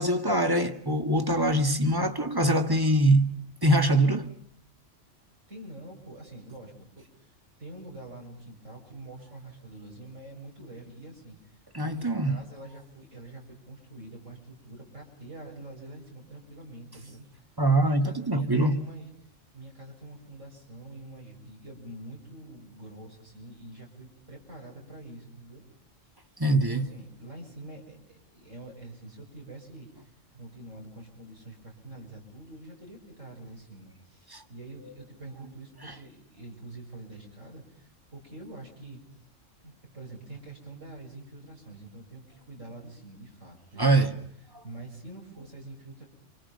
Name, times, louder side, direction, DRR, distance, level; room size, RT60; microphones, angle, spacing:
voice 1, 0.0-3.4 3.6-4.3 11.7-12.4 17.6-18.9 26.4-26.9 34.3-34.4 43.8-44.2, right 1 dB, 20° right, 1.7 m, -23 dB
voice 2, 5.5-17.3 17.8-25.7 26.5-39.0 39.6-44.2 44.6-46.0, right 2 dB, 80° right, 7.8 m, -46 dB
29.0 x 26.5 x 5.4 m
omnidirectional pair, 1.3 m